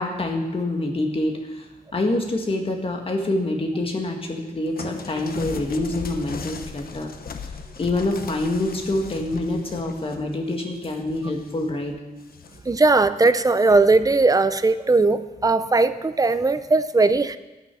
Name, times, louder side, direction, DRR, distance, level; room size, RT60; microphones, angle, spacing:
voice 1, 0.0-1.7 1.9-7.1 7.8-12.0, left 2 dB, 35° left, 2 dB, 1.7 m, -26 dB
sound 1, 4.8-11.7 12.2-12.8 13.7-14.0, left 6 dB, 65° left, 0.9 m, -38 dB
voice 2, 12.7-17.4, right 3 dB, 20° right, 12 dB, 0.5 m, -18 dB
12.5 x 10.0 x 6.2 m, 1.1 s
wide cardioid pair, 180°, 16 cm